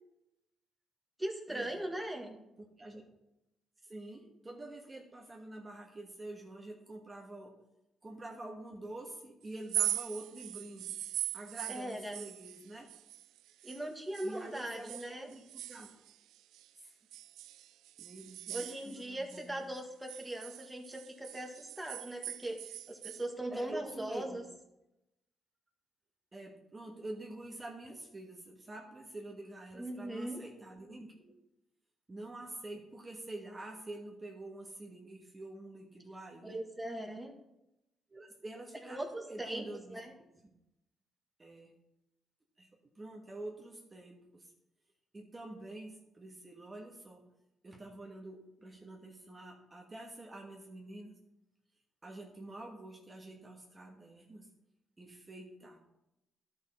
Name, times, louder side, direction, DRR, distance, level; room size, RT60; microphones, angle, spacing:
voice 1, 1.2-2.4 11.7-12.2 13.6-15.3 18.5-24.4 29.8-30.4 36.4-37.3 38.8-39.6 39.9-40.1, right 1 dB, 5° right, 1 dB, 1.6 m, -40 dB
voice 2, 3.9-7.5 8.0-10.9 11.3-12.9 14.2-15.9 18.0-19.6 23.5-24.4 26.3-31.2 32.1-36.6 38.1-40.0 41.4-41.7 42.6-42.7 43.0-44.5 45.1-47.2 47.6-51.2 52.0-54.5 55.0-55.8, right 2 dB, 25° right, 0 dB, 1.4 m, -47 dB
sound 1, 9.6-13.8 14.1-16.7 17.1-19.4 19.8-23.3, right 13 dB, 85° right, 0.3 m, -41 dB
11.5 x 5.9 x 4.3 m, 0.89 s
cardioid pair, 90°, 0 cm